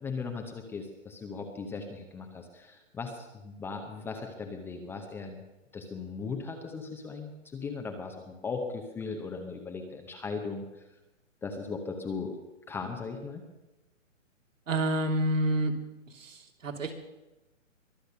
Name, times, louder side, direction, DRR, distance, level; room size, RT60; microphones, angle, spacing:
voice 1, 0.0-5.4 5.7-10.6 11.4-12.4 12.7-13.4, left 4 dB, 5° left, 4 dB, 0.7 m, -38 dB
voice 2, 14.7-15.7 16.1-16.9, right 1 dB, 75° right, 4 dB, 3.0 m, -28 dB
22.5 x 8.0 x 6.7 m, 0.99 s
hypercardioid pair, 140°, 39 cm